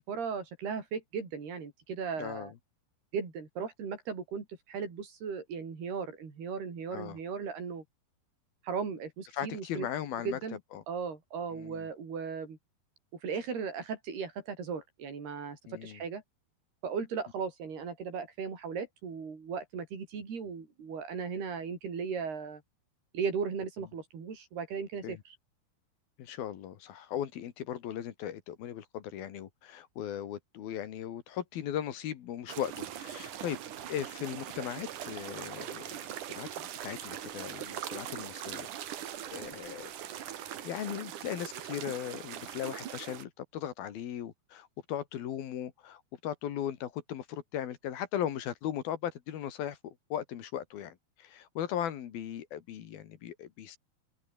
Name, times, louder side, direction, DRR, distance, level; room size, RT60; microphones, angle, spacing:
voice 1, 0.0-2.5 3.1-7.8 8.6-9.9 10.3-10.6 10.9-12.6 13.2-16.2 16.8-22.6 23.1-25.4, right 6 dB, 80° right, 7.4 m, -37 dB
voice 2, 2.2-2.5 6.9-7.2 9.3-10.4 10.7-10.8 11.5-11.9 15.7-16.0 25.0-25.2 26.2-33.6 33.9-36.0 36.3-38.7 39.0-39.9 40.6-53.8, left 10 dB, 75° left, 3.6 m, -38 dB
sound 1, 32.5-43.2, right 10 dB, 60° right, 2.9 m, -41 dB
open air
omnidirectional pair, 4.5 m